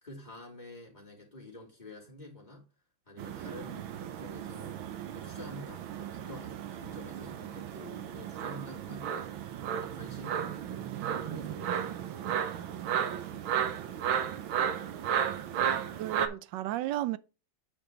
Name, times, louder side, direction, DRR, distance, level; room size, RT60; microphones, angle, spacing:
voice 1, 0.0-2.6 3.1-4.8 5.1-9.3 9.8-10.8 11.2-12.3, left 1 dB, 20° left, 2.8 m, -48 dB
sound 1, 3.2-16.3, right 9 dB, 90° right, 1.7 m, -34 dB
voice 2, 12.8-13.3 14.9-15.0 15.5-17.2, right 15 dB, 75° right, 1.1 m, -36 dB
9.2 x 5.0 x 3.8 m
omnidirectional pair, 2.2 m